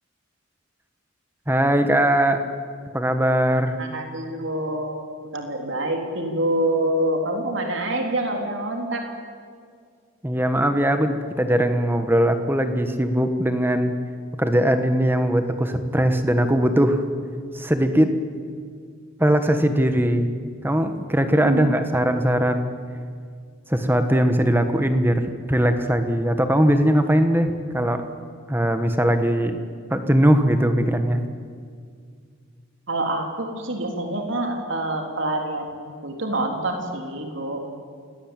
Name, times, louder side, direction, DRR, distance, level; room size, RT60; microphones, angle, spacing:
voice 1, 1.5-2.5 2.9-3.8 10.2-13.9 14.4-17.0 17.5-18.1 19.2-20.3 20.6-22.7 23.7-28.1 28.5-29.6 29.9-31.2, equal, 10° right, 7 dB, 1.4 m, -20 dB
voice 2, 3.8-5.0 5.3-9.1 21.4-21.7 32.9-35.7 36.0-37.6, right 1 dB, 60° right, 3 dB, 3.7 m, -26 dB
28.5 x 18.5 x 9.1 m, 2.1 s
head